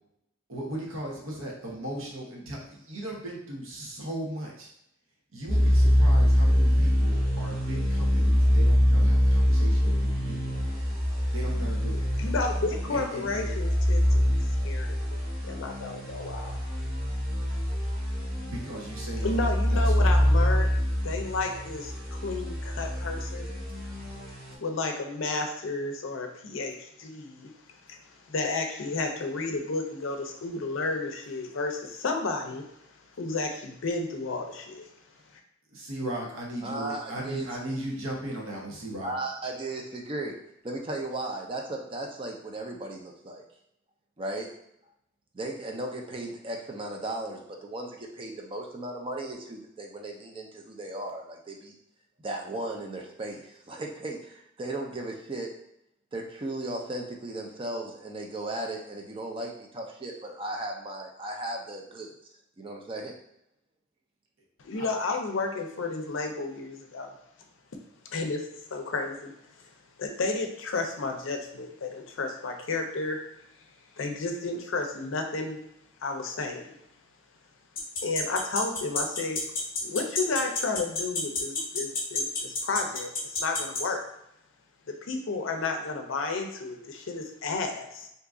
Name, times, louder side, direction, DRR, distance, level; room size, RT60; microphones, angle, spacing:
voice 1, 0.5-4.7 5.3-10.5 11.3-12.0 12.9-13.4 18.4-20.2 35.7-39.1 64.8-64.9, right 1 dB, 80° right, -2 dB, 0.9 m, -37 dB
sound 1, 5.5-24.5, equal, 45° right, 1.1 m, -25 dB
voice 2, 12.2-14.4 14.6-15.2 15.4-16.6 19.2-20.7 21.0-23.5 24.6-32.7 33.2-34.9 64.6-67.1 68.1-69.3 69.6-69.7 70.0-73.2 74.0-75.6 76.0-76.7 78.0-79.4 79.8-84.0 84.9-88.1, left 3 dB, 70° left, 4 dB, 0.5 m, -32 dB
voice 3, 36.6-37.5 39.0-40.4 40.6-43.4 44.2-44.5 45.3-51.7 52.2-55.5 56.1-62.1 62.6-63.2, right 2 dB, 25° right, 1 dB, 0.4 m, -36 dB
sound 2, 77.8-83.8, left 4 dB, 45° left, 0.8 m, -29 dB
2.8 x 2.4 x 3.6 m, 0.78 s
head